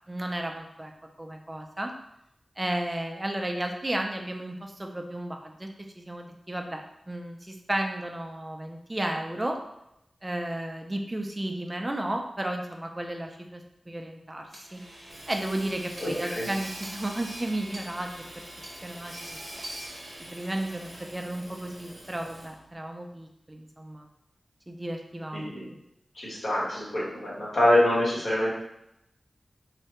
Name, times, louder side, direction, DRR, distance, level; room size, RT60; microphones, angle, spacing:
voice 1, 0.1-0.9 1.2-1.9 2.6-5.7 6.0-6.8 7.1-9.6 10.2-14.8 15.3-18.4 18.8-19.4 20.3-24.1 24.7-25.5, right 1 dB, 20° right, 3 dB, 0.4 m, -33 dB
Hammer / Sawing, 14.5-22.7, right 1 dB, 45° right, 0.7 m, -43 dB
voice 2, 16.0-16.5 25.3-25.7 26.1-28.5, left 1 dB, 55° left, -7 dB, 1.2 m, -25 dB
3.2 x 2.2 x 2.8 m, 0.82 s
wide cardioid pair, 115°, 0 cm